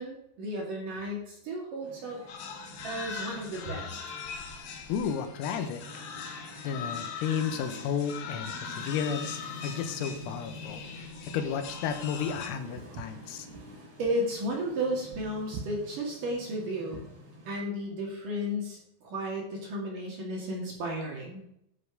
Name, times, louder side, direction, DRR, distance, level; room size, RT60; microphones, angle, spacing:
voice 1, 0.0-2.2 2.8-4.0 14.0-17.0 17.4-21.4, equal, 50° right, -1 dB, 3.1 m, -33 dB
sound 1, 1.8-17.5, left 2 dB, 25° right, 4.3 m, -48 dB
sound 2, 2.3-12.5, left 6 dB, 70° left, 3.9 m, -41 dB
voice 2, 4.9-5.8 6.2-6.4 6.6-13.5, left 7 dB, 90° left, 8 dB, 3.8 m, -33 dB
Walk footsteps, 12.8-17.2, right 6 dB, 85° right, 3.5 m, -45 dB
12.5 x 7.1 x 4.9 m, 0.77 s
omnidirectional pair, 5.9 m